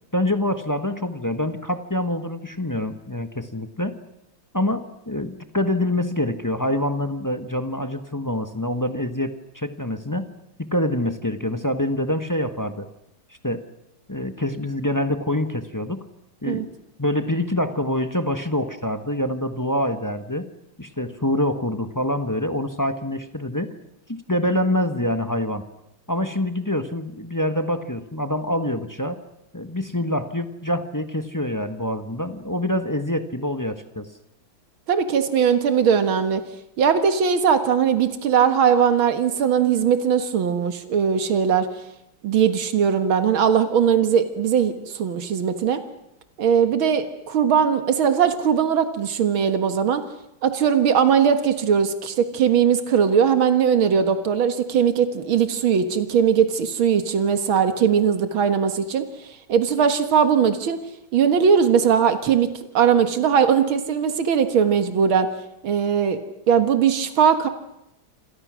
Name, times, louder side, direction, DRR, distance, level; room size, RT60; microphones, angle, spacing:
voice 1, 0.1-4.0 4.5-10.3 10.6-12.9 13.4-13.6 14.1-16.0 16.4-20.5 20.8-23.7 24.1-25.7 26.1-29.2 29.5-34.1, left 1 dB, 10° left, 8 dB, 1.0 m, -25 dB
voice 2, 34.9-36.4 36.8-41.7 42.2-45.8 46.4-50.0 50.4-59.1 59.5-60.8 61.1-62.5 62.7-65.3 65.6-66.2 66.5-67.5, right 7 dB, 85° right, 8 dB, 2.4 m, -19 dB
28.0 x 26.5 x 6.3 m, 0.84 s
omnidirectional pair, 2.2 m